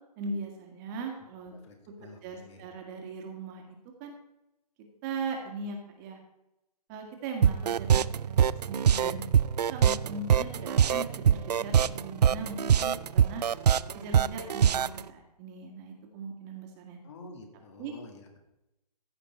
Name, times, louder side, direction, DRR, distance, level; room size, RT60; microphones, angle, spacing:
voice 1, 0.2-1.6 2.0-4.1 5.0-6.2 6.9-9.2 9.7-13.4 13.9-17.0 17.7-17.9, right 3 dB, 30° right, 2 dB, 1.8 m, -39 dB
voice 2, 1.5-2.7 17.0-18.4, left 3 dB, 45° left, 4 dB, 2.1 m, -49 dB
sound 1, 7.4-15.0, right 8 dB, 80° right, 0.4 m, -23 dB
15.0 x 5.8 x 4.5 m, 0.92 s
hypercardioid pair, 145°, 20 cm